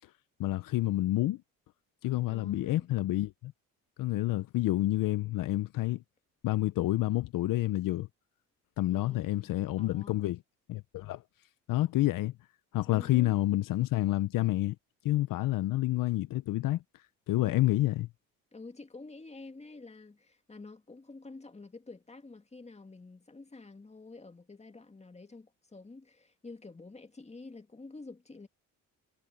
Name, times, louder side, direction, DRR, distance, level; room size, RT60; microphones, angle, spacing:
voice 1, 0.4-1.4 2.0-3.5 4.0-6.0 6.4-8.1 8.8-10.4 10.7-11.2 11.7-12.3 12.7-14.8 15.0-16.8 17.3-18.1, left 16 dB, 70° left, 0.8 m, -29 dB
voice 2, 2.3-2.9 8.9-10.2 12.9-13.4 17.3-17.9 18.5-28.5, left 3 dB, 20° left, 2.2 m, -49 dB
supercardioid pair, 75°, 34 cm